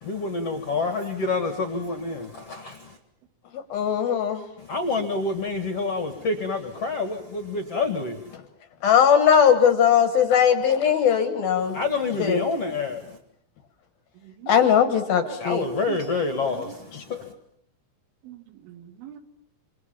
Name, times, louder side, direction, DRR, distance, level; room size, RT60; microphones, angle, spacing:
voice 1, 0.0-3.0 4.6-8.3 11.7-13.2 15.4-17.3, left 3 dB, 50° left, 7 dB, 1.9 m, -28 dB
voice 2, 3.7-4.4 8.8-11.8 12.2-12.4 14.5-15.7, left 8 dB, 65° left, 9 dB, 2.5 m, -19 dB
voice 3, 14.2-14.5 15.1-15.4 15.9-16.0 16.5-16.8 18.2-19.2, right 7 dB, 80° right, 8 dB, 4.4 m, -41 dB
27.5 x 27.0 x 7.3 m, 0.70 s
omnidirectional pair, 5.6 m